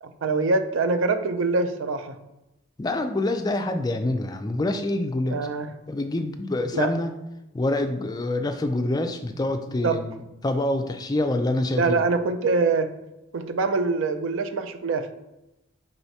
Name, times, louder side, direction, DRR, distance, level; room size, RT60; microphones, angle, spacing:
voice 1, 0.0-2.2 5.3-5.7 6.7-6.9 9.8-10.0 11.7-12.9 13.3-15.1, right 3 dB, 75° right, 8 dB, 0.4 m, -24 dB
voice 2, 2.8-5.4 5.9-7.1 7.5-12.0, left 2 dB, 20° left, 7 dB, 0.3 m, -26 dB
4.5 x 4.1 x 2.7 m, 0.93 s
head